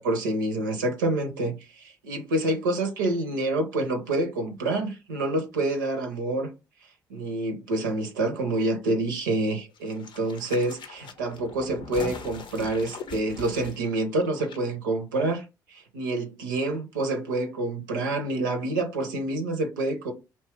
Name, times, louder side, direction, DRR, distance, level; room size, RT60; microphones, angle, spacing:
voice 1, 0.0-6.5 7.1-20.1, right 2 dB, 85° right, 0.5 m, -27 dB
sound 1, 9.7-14.6 14.9-15.0, left 5 dB, 55° left, 0.6 m, -41 dB
2.8 x 2.2 x 2.9 m
hypercardioid pair, 45°, 10 cm